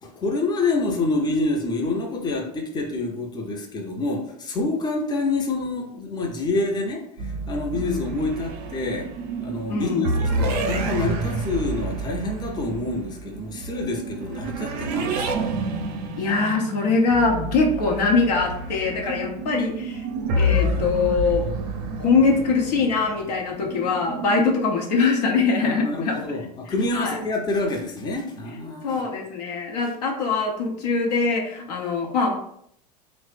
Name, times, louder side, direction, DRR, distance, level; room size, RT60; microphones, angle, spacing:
voice 1, 0.0-9.1 9.4-15.5 25.6-29.0, left 2 dB, 20° left, 1 dB, 0.6 m, -27 dB
sound 1, 7.2-24.6, right 1 dB, 65° right, 0.5 m, -29 dB
voice 2, 7.7-8.2 9.7-10.1 16.2-20.0 20.4-21.4 22.0-26.2 26.9-27.2 28.8-32.3, left 4 dB, 75° left, 0 dB, 0.7 m, -22 dB
3.0 x 2.1 x 3.2 m, 0.70 s
hypercardioid pair, 80°, 21 cm